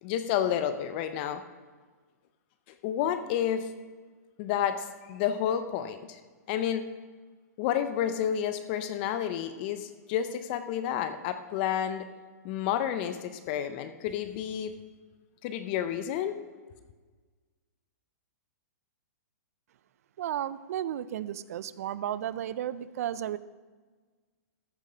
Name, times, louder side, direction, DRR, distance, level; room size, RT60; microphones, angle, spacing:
voice 1, 0.0-1.4 2.8-3.7 4.4-6.2 6.5-6.8 7.6-12.1 12.4-14.7 15.4-16.4, left 9 dB, 35° left, 10 dB, 0.6 m, -30 dB
voice 2, 20.2-23.4, right 11 dB, 60° right, 17 dB, 0.5 m, -33 dB
14.0 x 6.4 x 5.1 m, 1.4 s
hypercardioid pair, 150°, 9 cm